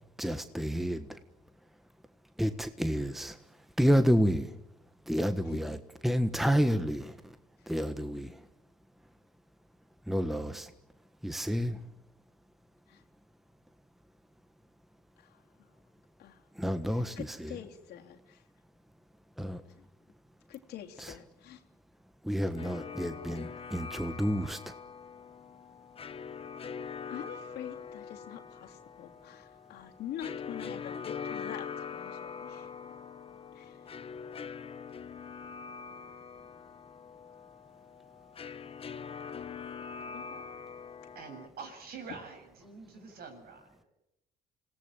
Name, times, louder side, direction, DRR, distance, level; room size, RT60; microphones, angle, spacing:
voice 1, 0.2-1.2 2.4-4.6 5.0-7.4 7.7-8.5 10.0-10.7 11.2-11.9 16.5-17.7 19.4-19.6 21.0-21.3 22.2-24.7, equal, ahead, 1.4 m, -30 dB
voice 2, 15.2-15.7 16.2-16.5 16.9-18.4 19.7-19.8 20.5-21.6 27.1-32.7 33.5-33.9 40.1-40.4 42.1-42.2, left 10 dB, 75° left, 3.3 m, -46 dB
sound 1, 22.6-41.5, left 6 dB, 35° left, 1.2 m, -43 dB
voice 3, 41.1-43.9, right 5 dB, 65° right, 7.6 m, -46 dB
27.0 x 18.0 x 9.0 m
cardioid pair, 110°, 17 cm